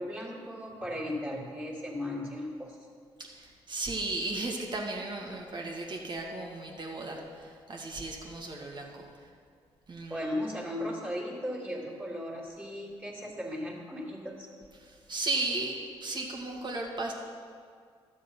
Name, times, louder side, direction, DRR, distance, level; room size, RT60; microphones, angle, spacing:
voice 1, 0.0-2.8 10.1-14.5, left 1 dB, 15° right, -4 dB, 3.1 m, -36 dB
voice 2, 3.2-9.3 9.9-10.3 14.8-17.1, right 2 dB, 45° right, 0 dB, 2.1 m, -35 dB
12.0 x 7.3 x 5.6 m, 2.1 s
supercardioid pair, 55°, 11 cm